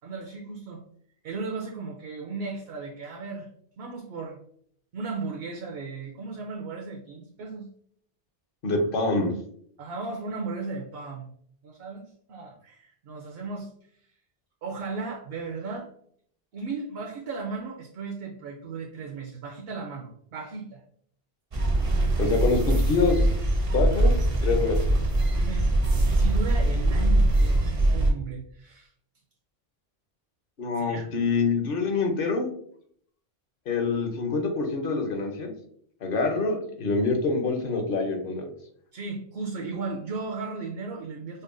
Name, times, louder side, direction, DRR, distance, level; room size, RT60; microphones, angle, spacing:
voice 1, 0.0-0.8 1.2-3.5 3.8-4.4 4.9-7.7 9.8-11.3 11.6-13.7 14.6-15.9 16.5-20.8 25.3-25.7 26.0-28.9 30.7-31.1 38.9-41.4, right 4 dB, 70° right, 1 dB, 0.8 m, -36 dB
voice 2, 8.6-9.3 22.2-23.3 23.7-24.1 24.4-24.8 30.6-32.5 33.7-35.5 36.0-38.5, left 3 dB, 60° left, 3 dB, 0.8 m, -25 dB
sound 1, 21.5-28.1, right 1 dB, 40° right, 0.5 m, -22 dB
5.3 x 2.1 x 2.5 m, 0.62 s
omnidirectional pair, 1.1 m